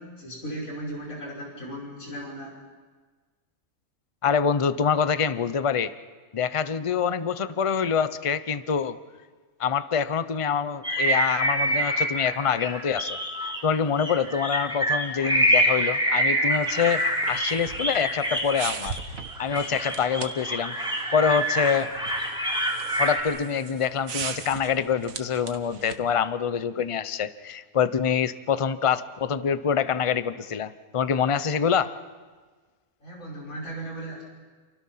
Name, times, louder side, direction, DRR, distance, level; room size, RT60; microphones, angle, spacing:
voice 1, 0.0-2.6 33.0-34.2, right 1 dB, 65° left, -3 dB, 5.8 m, -36 dB
voice 2, 4.2-5.9 6.3-9.0 9.6-13.2 13.6-18.9 19.4-20.7 21.1-21.9 23.0-31.9, left 7 dB, 30° left, 13 dB, 0.7 m, -25 dB
sound 1, 10.8-13.6 14.0-23.2, equal, 5° right, 4.0 m, -26 dB
sound 2, 16.5-26.1, right 6 dB, 70° right, 1.7 m, -39 dB
29.5 x 29.0 x 5.8 m, 1.4 s
omnidirectional pair, 1.5 m